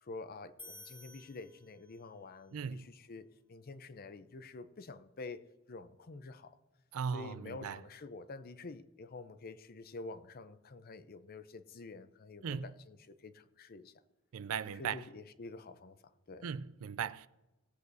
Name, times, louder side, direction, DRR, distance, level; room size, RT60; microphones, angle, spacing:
voice 1, 0.0-6.6 7.1-13.9 14.8-16.0 16.3-16.5, left 3 dB, 45° left, 0.6 m, -48 dB
sound 1, 0.6-2.2, left 3 dB, 5° left, 1.0 m, -54 dB
voice 2, 2.5-2.9 6.9-7.8 12.4-12.7 14.3-15.0 16.4-17.3, right 7 dB, 85° right, 0.4 m, -38 dB
18.0 x 8.0 x 2.7 m
head